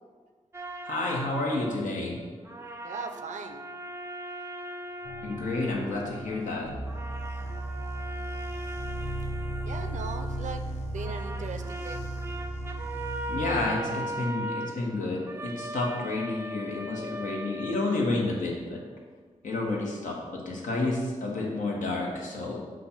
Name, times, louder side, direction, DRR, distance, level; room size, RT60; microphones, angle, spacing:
sound 1, 0.5-2.2 2.4-6.6 6.9-10.7 11.0-18.5, right 1 dB, 20° right, 0.4 m, -39 dB
voice 1, 0.8-2.2 5.2-6.7 13.3-18.8 19.4-22.6, left 2 dB, 85° left, -2 dB, 1.3 m, -30 dB
voice 2, 2.8-3.6 9.7-12.0 15.1-15.3, right 4 dB, 75° right, 7 dB, 0.5 m, -39 dB
sound 2, 5.0-14.3, equal, 45° left, 0.7 m, -41 dB
sound 3, 6.7-13.6, right 2 dB, 65° left, 1.0 m, -37 dB
7.6 x 2.5 x 5.7 m, 1.5 s
wide cardioid pair, 105°, 13 cm